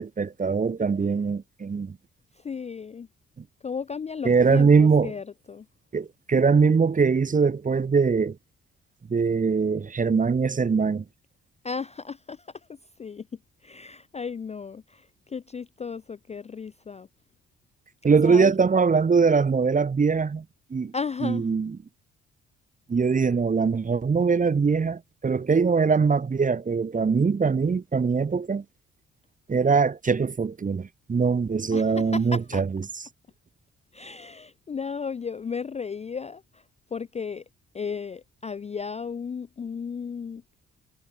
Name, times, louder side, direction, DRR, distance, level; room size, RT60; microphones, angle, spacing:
voice 1, 0.0-2.0 4.2-5.1 5.9-8.4 9.1-11.0 18.0-20.4 20.7-20.9 21.2-21.8 22.9-28.6 29.5-32.8, right 5 dB, 25° right, 0.7 m, -22 dB
voice 2, 2.4-3.1 3.6-5.7 11.6-12.5 13.0-13.3 13.6-17.1 18.2-18.5 20.9-21.4 31.7-32.6 33.9-36.6 36.9-37.4 37.7-40.4, left 5 dB, 20° left, 0.4 m, -34 dB
hypercardioid pair, 45°, 33 cm